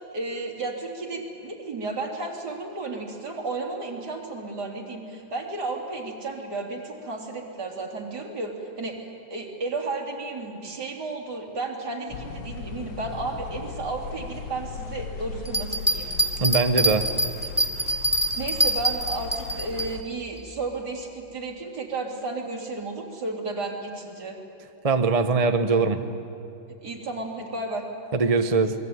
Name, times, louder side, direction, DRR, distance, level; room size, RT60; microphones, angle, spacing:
voice 1, 0.1-9.0 9.3-16.1 18.4-24.4 26.8-27.9, right 3 dB, 50° right, 1 dB, 3.8 m, -33 dB
sound 1, 12.1-20.0, left 6 dB, 85° left, 2.1 m, -38 dB
sound 2, 15.4-19.9, right 1 dB, 5° right, 1.7 m, -24 dB
voice 2, 16.4-17.1 24.8-26.0 28.1-28.7, right 4 dB, 30° right, 8 dB, 0.7 m, -21 dB
27.5 x 21.5 x 9.4 m, 2.7 s
omnidirectional pair, 2.2 m